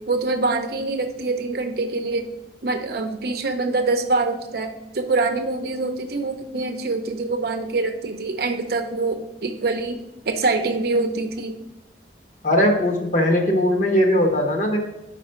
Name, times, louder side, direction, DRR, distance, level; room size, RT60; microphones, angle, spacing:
voice 1, 0.1-2.3 2.6-10.0 10.3-11.5, right 3 dB, 60° right, 6 dB, 0.7 m, -24 dB
voice 2, 12.4-14.8, left 1 dB, 45° left, 2 dB, 1.1 m, -19 dB
5.0 x 4.8 x 5.6 m, 0.93 s
head